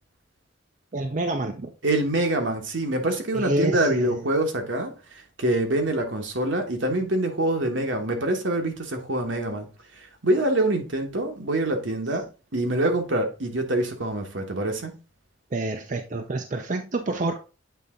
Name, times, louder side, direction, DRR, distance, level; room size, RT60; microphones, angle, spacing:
voice 1, 0.9-1.7 3.3-4.2 15.5-17.4, right 2 dB, 40° right, 0.5 m, -28 dB
voice 2, 1.8-9.7 9.9-12.3 12.5-14.9, right 1 dB, 75° right, 1.3 m, -25 dB
8.3 x 3.4 x 3.7 m
head